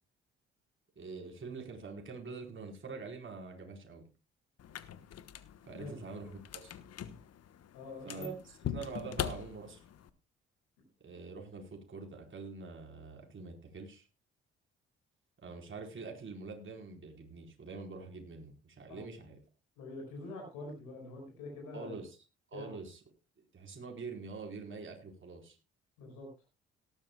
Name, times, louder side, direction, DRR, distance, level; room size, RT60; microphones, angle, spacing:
voice 1, 1.0-4.1 5.7-6.8 8.0-9.8 11.0-14.1 15.4-19.4 21.7-22.2 22.5-23.0 23.5-25.6, right 4 dB, 40° right, 2 dB, 4.5 m, -45 dB
sound 1, 4.6-10.1, left 9 dB, 55° left, 1.2 m, -42 dB
voice 2, 7.7-8.3 18.9-19.0 19.7-22.0 22.5-22.7 26.0-26.3, left 2 dB, 75° left, 0 dB, 5.1 m, -45 dB
18.0 x 13.0 x 2.3 m, 0.28 s
hypercardioid pair, 50°, 30 cm